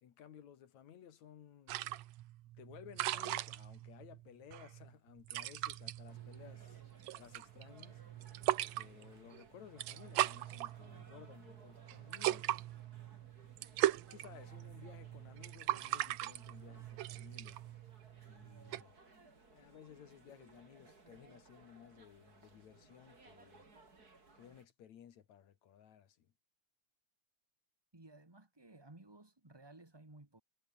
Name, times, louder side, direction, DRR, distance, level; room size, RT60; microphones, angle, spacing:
voice 1, 0.0-1.8 2.6-6.8 7.2-8.0 8.7-12.6 14.1-17.6 18.3-19.0 19.5-23.7 24.4-26.3, left 9 dB, 60° left, 2.9 m, -57 dB
sound 1, 1.7-18.8, right 15 dB, 70° right, 1.8 m, -40 dB
sound 2, 6.1-24.7, right 3 dB, 25° right, 4.5 m, -62 dB
voice 2, 27.9-30.4, right 2 dB, 10° right, 1.2 m, -57 dB
omnidirectional pair, 3.7 m